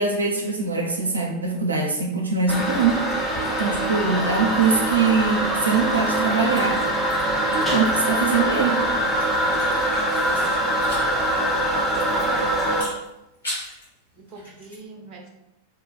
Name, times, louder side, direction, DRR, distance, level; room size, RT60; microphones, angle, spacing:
voice 1, 0.0-3.0 3.6-6.8 7.5-8.8, right 5 dB, 80° right, -1 dB, 0.5 m, -22 dB
Toilet flush, 2.5-12.8, right 1 dB, 10° left, 0.7 m, -23 dB
sound 1, 9.2-11.1 11.4-11.5 12.7-13.9 14.3-14.8, left 1 dB, 75° left, 1.3 m, -37 dB
voice 2, 12.0-12.6 12.9-13.0 14.1-15.3, right 3 dB, 35° right, 0 dB, 0.7 m, -41 dB
2.6 x 2.3 x 3.9 m, 0.92 s
figure-of-eight pair, 90°, 0 cm